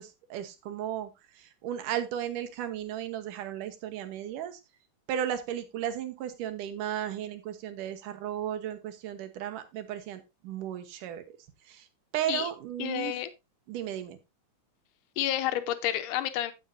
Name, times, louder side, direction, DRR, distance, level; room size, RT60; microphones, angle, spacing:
voice 1, 0.0-4.6 5.1-11.4 11.7-11.9 12.1-13.1 13.7-14.2, right 10 dB, 85° right, 9 dB, 2.7 m, -35 dB
voice 2, 12.8-13.3 15.2-16.5, left 12 dB, 85° left, 10 dB, 2.4 m, -30 dB
15.5 x 6.3 x 2.6 m, 0.22 s
omnidirectional pair, 3.7 m